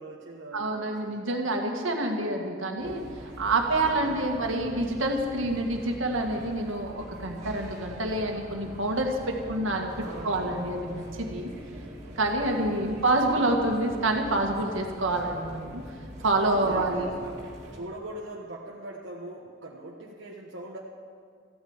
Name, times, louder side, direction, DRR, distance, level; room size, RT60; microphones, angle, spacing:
voice 1, 0.0-1.2 3.7-4.5 9.9-10.6 12.6-13.0 16.5-17.3 17.7-20.8, right 1 dB, 65° right, -3 dB, 1.3 m, -42 dB
voice 2, 0.5-11.5 12.2-15.8 16.2-17.1, right 2 dB, 80° right, 2 dB, 1.9 m, -27 dB
sound 1, 2.8-17.8, equal, 35° right, 3.1 m, -44 dB
15.0 x 9.1 x 8.9 m, 2.2 s
head